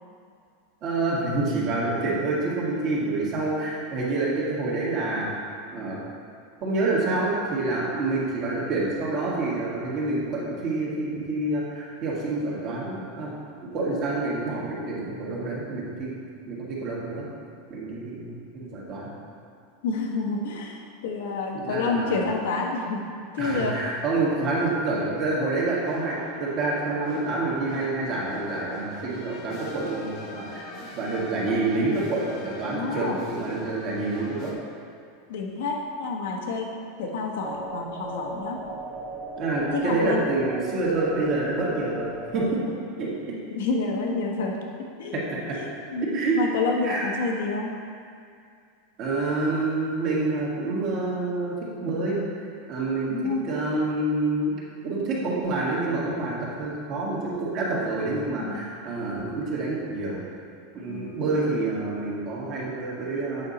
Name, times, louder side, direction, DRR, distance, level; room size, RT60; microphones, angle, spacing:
voice 1, 0.8-5.3 5.7-6.0 6.6-13.3 13.6-16.2 16.5-17.3 17.7-19.1 21.5-22.2 23.4-30.7 30.9-34.5 39.4-42.1 42.3-42.6 43.0-43.4 45.1-45.4 46.1-46.4 46.8-47.1 49.0-52.2 52.7-53.2 53.4-54.6 54.8-60.2 60.7-63.5, right 2 dB, 35° right, -5 dB, 1.9 m, -27 dB
voice 2, 19.8-23.1 23.3-23.8 32.7-33.2 35.3-36.7 37.0-38.6 39.7-40.2 43.5-44.6 45.0-45.2 45.5-47.7 53.1-53.4 58.4-58.6 60.9-61.2, left 3 dB, 75° left, 0 dB, 1.3 m, -29 dB
sound 1, 25.8-34.5, left 2 dB, 40° left, 1.0 m, -42 dB
sound 2, 37.4-42.5, right 2 dB, 10° left, 1.0 m, -37 dB
8.5 x 6.4 x 4.2 m, 2.3 s
supercardioid pair, 170°, 0 cm